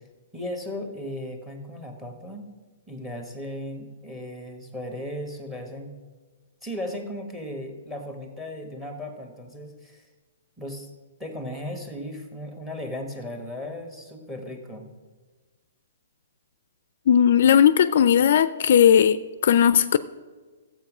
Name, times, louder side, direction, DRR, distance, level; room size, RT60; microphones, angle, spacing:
voice 1, 0.3-2.5 2.9-5.9 6.6-10.0 10.6-10.9 11.2-14.9, left 1 dB, 5° right, 1.3 m, -36 dB
voice 2, 17.1-20.0, left 9 dB, 50° left, 0.4 m, -17 dB
13.0 x 8.0 x 6.1 m
hypercardioid pair, 165°, 0 cm